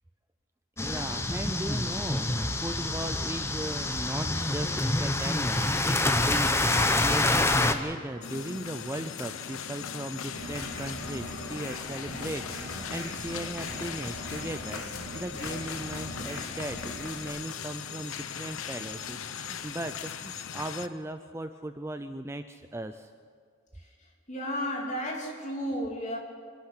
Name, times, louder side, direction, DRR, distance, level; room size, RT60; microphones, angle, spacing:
sound 1, 0.8-7.7, left 2 dB, 10° left, 0.8 m, -27 dB
voice 1, 0.8-23.1, right 1 dB, 10° right, 9 dB, 0.4 m, -37 dB
sound 2, 8.2-20.9, left 7 dB, 75° left, 0.9 m, -39 dB
sound 3, 10.3-17.2, equal, 55° left, 7.1 m, -41 dB
voice 2, 24.3-26.2, equal, 35° left, 0 dB, 3.2 m, -32 dB
25.5 x 11.5 x 9.8 m, 2.1 s
head